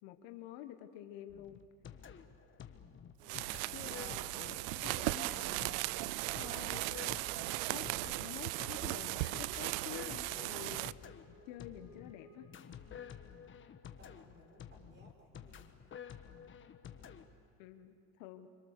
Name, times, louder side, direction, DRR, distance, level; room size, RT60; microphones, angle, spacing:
voice 1, 0.0-1.6 3.7-5.8 6.4-6.9 7.7-10.9 11.5-12.5 17.6-18.5, left 12 dB, 65° left, 7 dB, 1.6 m, -49 dB
sound 1, 1.3-17.3, left 8 dB, 25° left, 1.3 m, -51 dB
voice 2, 3.2-3.7 14.0-15.7, equal, 25° right, 4 dB, 4.2 m, -62 dB
sound 2, 3.2-10.9, right 20 dB, 60° right, 0.6 m, -37 dB
Wind instrument woodwind instrument, 6.5-13.3, equal, 5° right, 3.9 m, -62 dB
26.0 x 25.0 x 6.8 m, 2.3 s
supercardioid pair, 120°, 47 cm